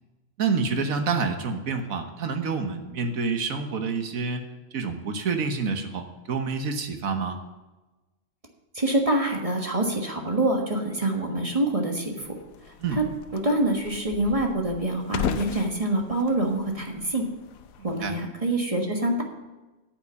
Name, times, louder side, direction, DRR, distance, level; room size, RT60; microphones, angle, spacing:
voice 1, 0.4-4.4 4.7-7.4 12.8-13.0 17.8-18.1, right 4 dB, 85° right, 6 dB, 1.6 m, -28 dB
voice 2, 8.7-12.1 12.9-13.1 13.3-17.2 17.8-19.2, right 1 dB, 25° right, 1 dB, 1.5 m, -25 dB
sound 1, 12.2-18.1, left 8 dB, 90° left, 1.1 m, -37 dB
9.2 x 7.9 x 6.9 m, 1.1 s
omnidirectional pair, 1.4 m